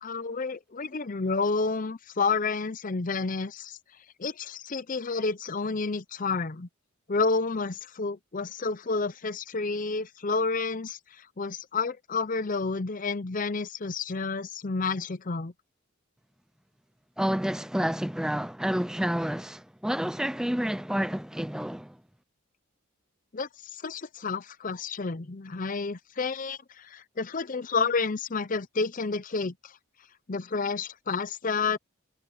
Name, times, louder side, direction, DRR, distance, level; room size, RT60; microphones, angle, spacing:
voice 1, 0.0-3.8 4.2-6.7 7.1-15.5 23.3-29.7 30.3-31.8, left 4 dB, 40° left, 0.6 m, -30 dB
voice 2, 17.2-22.0, equal, 5° right, 0.5 m, -29 dB
head